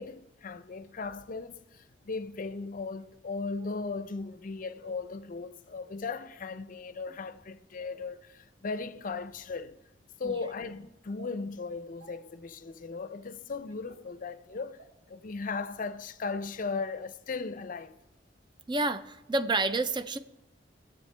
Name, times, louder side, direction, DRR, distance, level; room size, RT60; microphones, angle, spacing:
voice 1, 0.0-9.8 10.2-14.8 15.1-18.0, left 4 dB, 50° left, 0.5 m, -37 dB
sound 1, 1.1-1.2 2.1-2.2 3.6-3.8 4.8-5.0 5.8-6.0 6.9-7.2 7.8-8.0 8.7-8.8 9.5-9.7 10.4-10.5 11.2-11.3 12.0-12.1 12.9-13.0 13.9-14.0 14.8-14.9 15.4-15.5, right 2 dB, 75° right, 4.3 m, -55 dB
voice 2, 18.7-20.2, right 2 dB, 25° right, 0.5 m, -29 dB
22.0 x 8.1 x 3.3 m
head